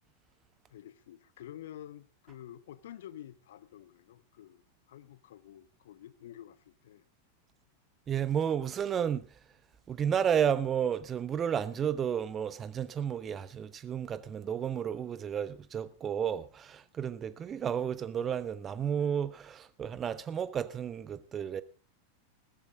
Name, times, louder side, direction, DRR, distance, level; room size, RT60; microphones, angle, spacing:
voice 1, 0.7-7.0, left 11 dB, 60° left, 0.8 m, -49 dB
voice 2, 8.1-9.5 9.9-21.6, right 8 dB, 25° right, 0.8 m, -32 dB
15.0 x 14.0 x 3.8 m
figure-of-eight pair, 90°, 0 cm